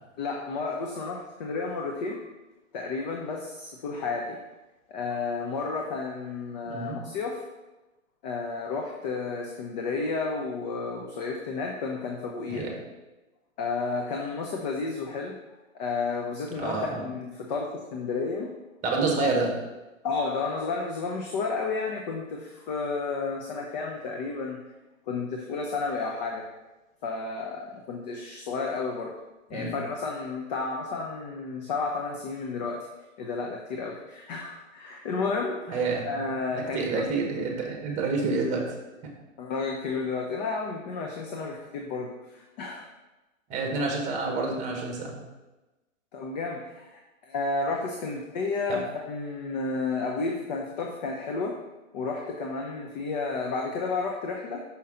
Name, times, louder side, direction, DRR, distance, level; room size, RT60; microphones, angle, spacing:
voice 1, 0.2-2.2 2.7-4.4 4.9-7.4 8.2-12.7 13.6-15.4 15.7-18.5 19.2-19.3 20.0-24.6 25.1-26.5 27.0-29.1 29.5-32.9 33.2-37.1 39.4-42.8 46.1-51.6 51.9-54.6, left 4 dB, 30° left, 1 dB, 0.7 m, -32 dB
voice 2, 6.6-7.0 12.5-12.7 16.6-17.0 18.8-19.5 29.5-29.7 35.7-36.1 36.5-38.7 43.5-45.2 48.7-48.8, right 3 dB, 20° right, 1 dB, 1.2 m, -28 dB
5.8 x 5.5 x 3.7 m, 1.1 s
hypercardioid pair, 140°, 40 cm